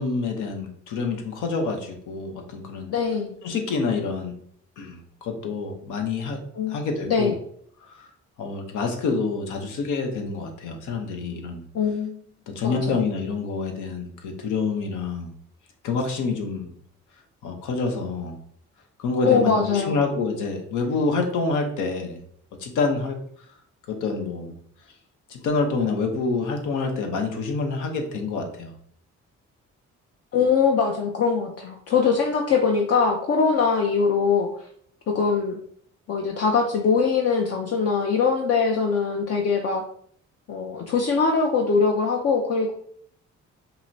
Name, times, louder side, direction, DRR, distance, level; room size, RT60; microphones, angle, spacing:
voice 1, 0.0-2.9 3.4-4.3 4.8-6.4 6.7-7.4 7.8-8.1 8.4-11.6 12.5-15.3 15.8-16.7 17.4-18.4 19.0-22.2 22.6-23.2 23.9-24.5 25.3-28.7, left 4 dB, 85° left, 4 dB, 0.8 m, -27 dB
voice 2, 2.9-3.3 6.6-6.8 7.1-7.3 11.7-12.1 12.6-13.0 19.2-20.0 30.3-34.5 35.1-35.5 36.1-39.8 40.5-42.7, left 5 dB, 50° left, 2 dB, 0.6 m, -22 dB
5.5 x 2.1 x 2.6 m, 0.62 s
cardioid pair, 90°, 30 cm